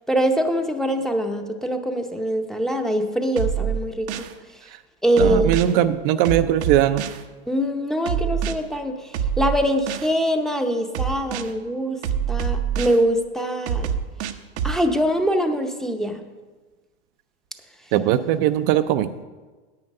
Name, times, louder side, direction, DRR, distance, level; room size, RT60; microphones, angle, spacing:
voice 1, 0.1-4.3 5.0-5.5 7.5-12.0 12.3-14.0 14.6-16.2, equal, ahead, 4 dB, 0.7 m, -23 dB
sound 1, 3.4-4.3 5.2-5.7 6.2-7.2 8.1-8.5 9.1-10.1 10.9-11.5 12.0-13.0 13.7-14.8, right 8 dB, 75° right, 0.9 m, -25 dB
voice 2, 5.2-7.0 17.9-19.1, right 12 dB, 55° right, 9 dB, 0.5 m, -20 dB
9.6 x 8.7 x 5.4 m, 1.3 s
hypercardioid pair, 115°, 34 cm